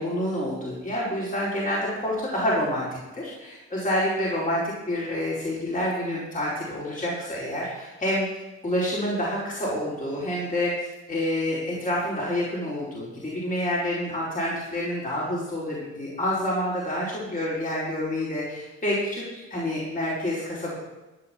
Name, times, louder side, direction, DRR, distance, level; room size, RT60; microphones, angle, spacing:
voice 1, 0.0-8.3 8.6-20.8, left 1 dB, 25° left, -6 dB, 4.6 m, -28 dB
14.0 x 6.2 x 7.8 m, 1.1 s
cardioid pair, 90°, 30 cm